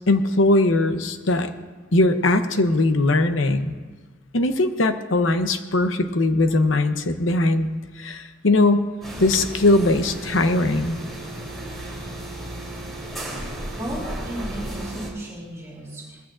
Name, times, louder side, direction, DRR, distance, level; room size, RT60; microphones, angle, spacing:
voice 1, 0.1-1.5 1.9-3.7 4.3-8.9 9.2-11.0, left 2 dB, 90° left, 8 dB, 0.8 m, -20 dB
sound 1, 9.0-15.1, right 1 dB, ahead, 3.4 m, -34 dB
voice 2, 13.8-16.2, right 1 dB, 15° right, -4 dB, 2.8 m, -34 dB
20.0 x 15.0 x 2.6 m, 1.3 s
head